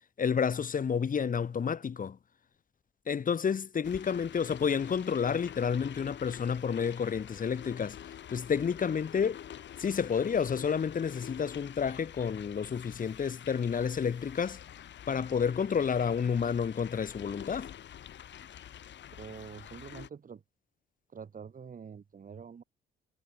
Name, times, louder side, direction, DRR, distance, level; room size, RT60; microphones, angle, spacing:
voice 1, 0.2-2.2 3.1-8.0 8.3-9.4 9.8-14.6 15.1-17.7, left 6 dB, 45° left, 2.3 m, -30 dB
sound 1, 3.8-20.1, left 10 dB, 65° left, 4.3 m, -47 dB
voice 2, 19.2-20.4 21.1-22.6, right 6 dB, 45° right, 3.9 m, -46 dB
cardioid pair, 90°, 20 cm